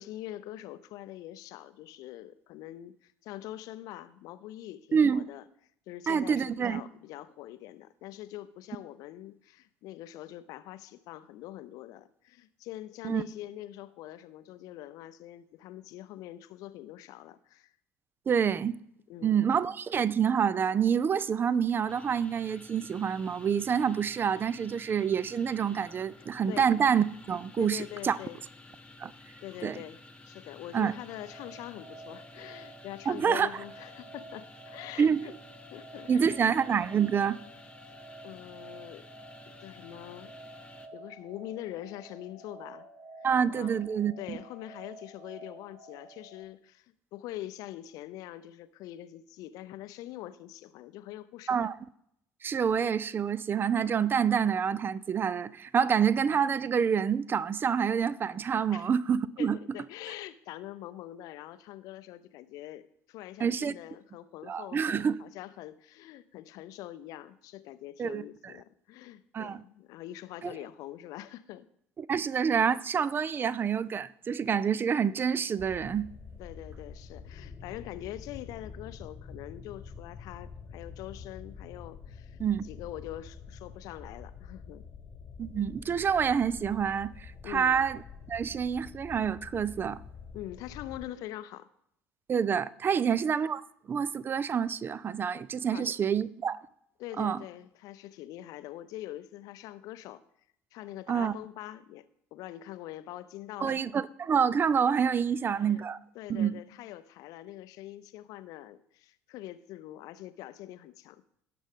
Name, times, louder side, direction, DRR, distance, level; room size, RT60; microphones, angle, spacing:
voice 1, 0.0-5.4 5.9-17.7 19.1-19.5 26.5-26.7 27.6-28.4 29.4-35.3 35.7-36.4 37.9-38.0 38.2-39.1 39.5-40.3 40.9-42.9 43.2-43.3 43.5-43.9 44.2-51.7 58.7-58.9 59.4-62.8 63.1-71.7 76.4-84.8 87.4-87.8 90.3-91.7 95.7-95.9 97.0-100.2 100.7-102.0 102.3-103.8 105.4-105.8 106.1-111.2, left 14 dB, 55° left, 0.6 m, -44 dB
voice 2, 4.9-5.2 6.1-6.8 13.0-13.2 18.3-18.8 19.2-28.2 29.0-29.1 29.6-29.8 30.7-30.9 33.1-33.5 35.0-35.2 36.1-37.4 43.2-44.4 51.5-51.8 52.4-59.6 63.4-63.7 64.5-65.2 68.0-68.2 69.3-69.6 70.4-70.5 72.1-76.1 82.4-82.6 85.4-88.0 88.3-90.0 92.3-93.6 93.9-96.6 97.2-97.4 101.1-101.3 103.6-106.0 106.3-106.5, right 7 dB, 30° right, 0.5 m, -27 dB
sound 1, 21.9-40.9, left 2 dB, 15° left, 0.9 m, -53 dB
sound 2, 30.8-46.4, right 2 dB, 55° right, 1.2 m, -50 dB
sound 3, 75.6-91.1, left 5 dB, 30° left, 1.2 m, -47 dB
17.5 x 6.2 x 3.6 m
figure-of-eight pair, 60°, 8 cm